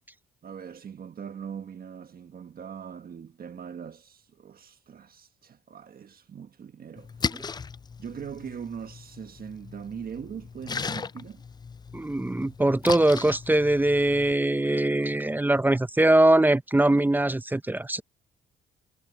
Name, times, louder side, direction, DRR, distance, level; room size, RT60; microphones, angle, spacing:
voice 1, 0.4-7.6 8.0-11.4, right 7 dB, 50° right, 1.5 m, -41 dB
Splash splatter, 7.0-14.3, left 5 dB, 20° left, 0.4 m, -37 dB
voice 2, 11.9-18.0, right 1 dB, 10° right, 0.7 m, -22 dB
cardioid pair, 90°, 20 cm